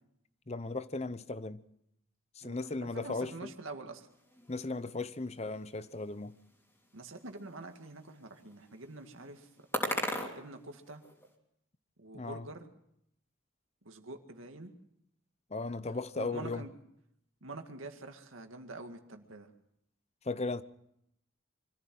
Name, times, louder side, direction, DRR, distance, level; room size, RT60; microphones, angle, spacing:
voice 1, 0.5-1.6 2.4-3.5 4.5-6.3 12.1-12.5 15.5-16.7 20.2-20.6, left 3 dB, 30° left, 0.8 m, -36 dB
voice 2, 2.4-4.1 6.9-9.5 10.3-11.0 12.0-12.6 13.8-14.7 16.2-16.7 17.4-19.5, right 2 dB, 80° right, 2.1 m, -46 dB
sound 1, 4.1-11.3, left 1 dB, 10° left, 3.1 m, -42 dB
25.0 x 14.5 x 7.7 m
head